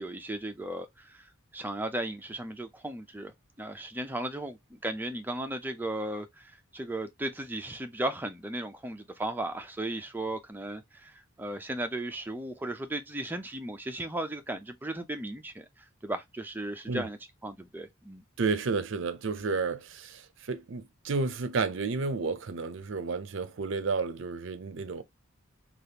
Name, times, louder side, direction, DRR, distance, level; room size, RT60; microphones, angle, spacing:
voice 1, 0.0-11.1 11.4-15.7 16.0-17.2 17.4-18.2, right 1 dB, 10° right, 0.4 m, -36 dB
voice 2, 18.4-25.0, right 4 dB, 65° right, 0.5 m, -31 dB
3.4 x 2.4 x 2.8 m
head